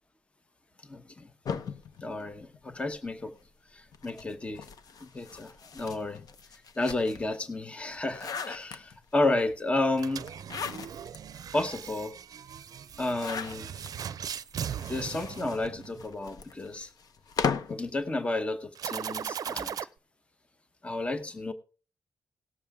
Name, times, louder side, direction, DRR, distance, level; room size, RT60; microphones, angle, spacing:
voice 1, 0.8-1.3 2.0-3.3 3.7-4.7 5.0-6.2 6.5-10.3 11.5-12.1 13.0-13.7 14.9-16.9 17.7-19.8 20.8-21.5, left 2 dB, 20° left, 10 dB, 0.8 m, -32 dB
sound 1, 1.5-3.1 3.9-7.4 7.8-9.2 10.2-11.2 11.7-11.8 12.0-12.1 13.0-13.9 14.6-17.9, left 6 dB, 70° left, 0.8 m, -37 dB
sound 2, 9.9-16.1 18.8-19.8, right 8 dB, 65° right, 0.5 m, -38 dB
18.5 x 7.0 x 3.5 m, 0.36 s
wide cardioid pair, 160°, 7 cm